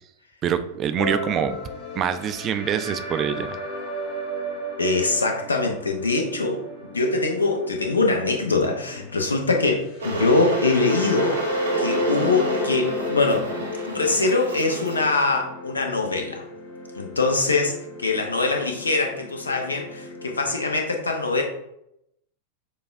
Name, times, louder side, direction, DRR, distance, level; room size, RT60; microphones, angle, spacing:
voice 1, 0.4-1.6 1.9-3.5, right 8 dB, 30° right, 10 dB, 0.3 m, -25 dB
sound 1, 1.0-20.5, left 1 dB, 40° left, 1.0 m, -34 dB
voice 2, 4.8-6.6 6.9-11.4 11.8-13.5 13.9-16.4 17.0-17.7 18.0-21.4, left 3 dB, 75° left, 3 dB, 0.6 m, -23 dB
Water / Boiling, 10.0-15.1, right 2 dB, 75° right, 0.9 m, -29 dB
6.6 x 2.3 x 2.4 m, 0.80 s
figure-of-eight pair, 90°, 0 cm